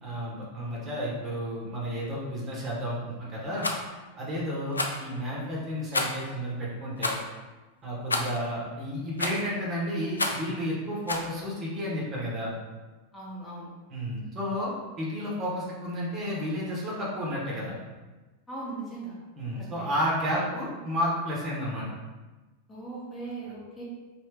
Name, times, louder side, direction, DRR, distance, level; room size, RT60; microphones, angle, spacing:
voice 1, 0.0-3.7 4.2-7.1 7.8-12.5 13.9-17.8 19.4-21.9, equal, 30° right, -5 dB, 1.0 m, -32 dB
Rattle, 3.6-3.8 4.7-5.0 5.9-6.3 7.0-7.2 8.1-8.4 9.2-9.5 10.2-10.5 11.1-11.3, left 2 dB, 80° left, 0.3 m, -29 dB
voice 2, 13.1-13.7 18.5-19.1 19.5-19.9 22.7-23.8, right 3 dB, 20° left, -6 dB, 1.1 m, -39 dB
3.3 x 2.8 x 3.4 m, 1.2 s
figure-of-eight pair, 90°, 0 cm